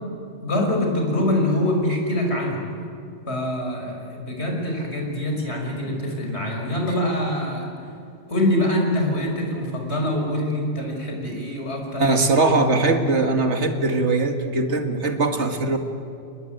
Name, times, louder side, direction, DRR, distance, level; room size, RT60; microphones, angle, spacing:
voice 1, 0.4-2.6 3.3-7.7 8.3-12.8, left 1 dB, 65° left, 1 dB, 5.5 m, -24 dB
voice 2, 12.0-15.8, right 3 dB, 75° right, 6 dB, 2.2 m, -21 dB
29.5 x 19.5 x 9.3 m, 2.5 s
omnidirectional pair, 1.2 m